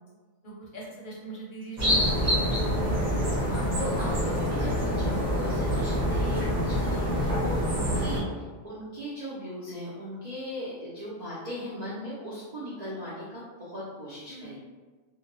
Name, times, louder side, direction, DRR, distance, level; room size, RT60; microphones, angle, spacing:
voice 1, 0.4-3.1 7.9-8.3 14.3-14.6, right 3 dB, 50° left, -5 dB, 0.7 m, -41 dB
sound 1, 1.8-8.2, equal, 35° right, 1.0 m, -26 dB
voice 2, 3.4-14.6, equal, 85° right, -9 dB, 0.3 m, -38 dB
2.3 x 2.2 x 2.9 m, 1.3 s
omnidirectional pair, 1.4 m